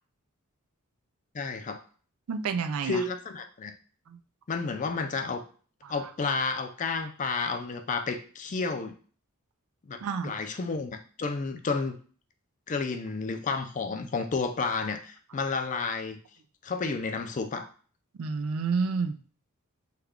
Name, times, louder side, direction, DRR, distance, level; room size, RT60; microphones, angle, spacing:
voice 1, 1.3-1.8 2.8-3.7 4.5-5.4 5.9-8.9 9.9-12.0 12.7-16.2 16.6-17.7, left 4 dB, 35° left, 6 dB, 0.4 m, -31 dB
voice 2, 2.3-3.0 4.1-4.2 5.8-5.9 10.0-10.3 18.2-19.1, right 5 dB, 75° right, 10 dB, 0.4 m, -29 dB
3.2 x 2.3 x 3.6 m, 0.41 s
head